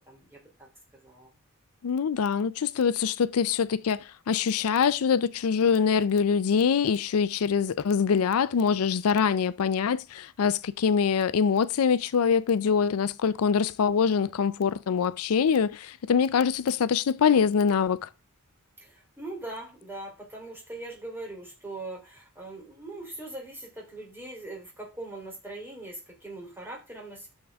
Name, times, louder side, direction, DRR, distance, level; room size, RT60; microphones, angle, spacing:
voice 1, 0.1-0.7 1.0-1.3 18.8-27.3, right 2 dB, 10° right, 3.2 m, -41 dB
voice 2, 1.8-4.0 4.3-18.1, left 6 dB, 75° left, 0.4 m, -24 dB
10.5 x 6.5 x 3.5 m
head